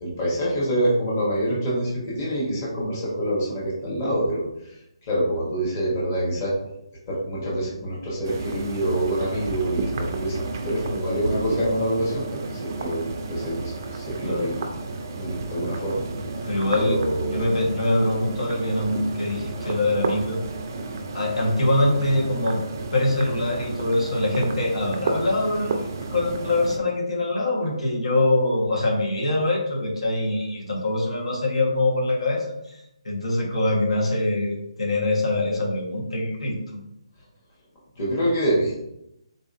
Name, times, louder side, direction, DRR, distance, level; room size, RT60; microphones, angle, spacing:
voice 1, 0.0-4.8 5.0-6.5 7.1-14.6 15.2-16.0 16.7-17.5 19.6-19.7 38.0-38.7, right 1 dB, 25° left, -6 dB, 0.9 m, -26 dB
sound 1, 8.2-26.8, right 3 dB, 30° right, 0.3 m, -32 dB
voice 2, 16.4-20.4 21.1-22.6 22.9-32.8 33.0-36.6, left 2 dB, 85° left, -2 dB, 1.2 m, -24 dB
3.8 x 2.6 x 2.5 m, 0.83 s
hypercardioid pair, 170°, 3 cm